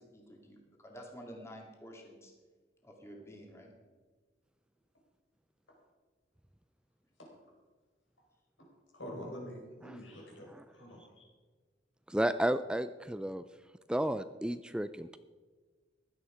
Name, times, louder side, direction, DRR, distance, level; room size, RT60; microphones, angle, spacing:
voice 1, 0.0-2.3 2.8-3.7, equal, 15° left, 1 dB, 2.1 m, -50 dB
voice 2, 8.9-11.3, equal, 80° left, -1 dB, 4.9 m, -46 dB
voice 3, 12.1-13.4 13.9-15.2, right 1 dB, 5° right, 12 dB, 0.3 m, -32 dB
15.5 x 11.5 x 5.0 m, 1.4 s
head